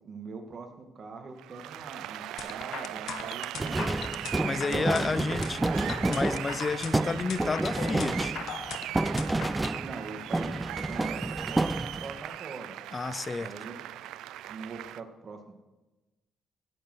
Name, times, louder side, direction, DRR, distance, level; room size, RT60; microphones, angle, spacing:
voice 1, 0.0-4.0 4.5-5.3 9.8-10.6 10.9-12.8 13.4-13.9 14.5-15.5, right 4 dB, 45° right, 2.0 m, -42 dB
Applause, 1.4-15.0, right 13 dB, 90° right, 0.4 m, -39 dB
sound 1, 2.4-9.8, left 9 dB, 70° left, 0.7 m, -39 dB
sound 2, 3.6-10.1 10.3-12.2, right 2 dB, 15° right, 0.4 m, -30 dB
voice 2, 4.4-8.4 12.9-13.5, left 4 dB, 30° left, 0.6 m, -31 dB
16.5 x 7.9 x 6.3 m
cardioid pair, 90°, 0 cm